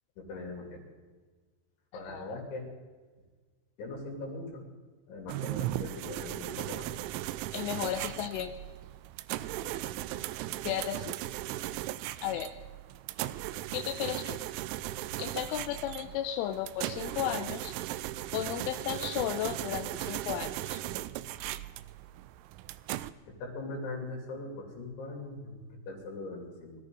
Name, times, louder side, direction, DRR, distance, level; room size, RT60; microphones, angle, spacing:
voice 1, 0.2-0.8 1.9-2.7 3.8-4.6 5.1-6.9 23.4-26.8, left 2 dB, 70° left, 0 dB, 5.4 m, -40 dB
voice 2, 2.0-2.4 7.5-8.5 10.6-11.2 12.2-12.5 13.7-14.4 15.2-17.7 18.3-20.8, left 11 dB, 90° left, 7 dB, 3.2 m, -34 dB
sound 1, 5.3-23.1, right 15 dB, 85° right, 2.9 m, -37 dB
22.0 x 14.0 x 4.0 m, 1.4 s
omnidirectional pair, 5.6 m